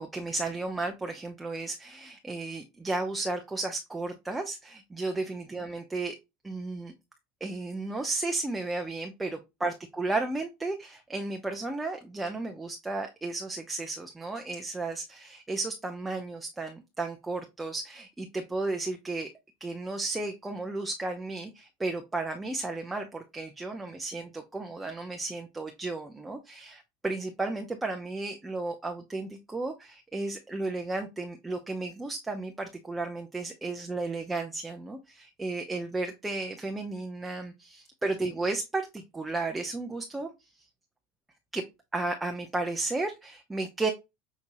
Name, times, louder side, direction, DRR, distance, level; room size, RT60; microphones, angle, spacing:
voice 1, 0.0-6.1 6.4-6.9 7.4-19.3 19.6-40.3 40.6-40.7 41.5-41.6 41.9-43.9, right 2 dB, 15° right, 4 dB, 0.8 m, -33 dB
6.1 x 2.7 x 2.7 m, 0.22 s
hypercardioid pair, 85°, 0 cm